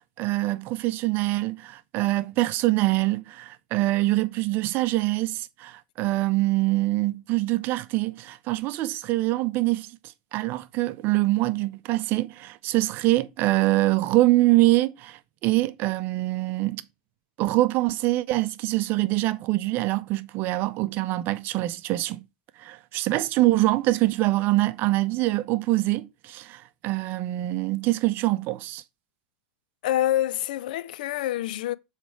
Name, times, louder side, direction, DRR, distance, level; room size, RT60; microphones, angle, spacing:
voice 1, 0.2-9.9 10.3-16.8 17.4-22.2 22.6-28.8, right 18 dB, 45° right, 0.6 m, -24 dB
voice 2, 29.8-31.7, left 13 dB, 70° left, 0.4 m, -26 dB
7.4 x 3.3 x 4.6 m
hypercardioid pair, 105°, 5 cm